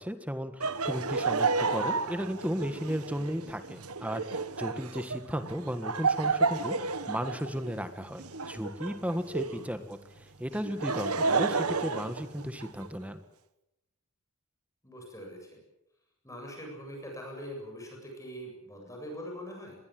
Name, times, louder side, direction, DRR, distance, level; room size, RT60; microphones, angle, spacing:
voice 1, 0.0-13.2, equal, 5° right, 9 dB, 1.6 m, -35 dB
Laughter, 0.6-9.7 10.5-12.9, right 4 dB, 80° right, 1.5 m, -31 dB
voice 2, 14.8-15.5 16.2-19.8, equal, 15° left, 1 dB, 7.8 m, -43 dB
25.0 x 21.0 x 7.8 m, 0.87 s
head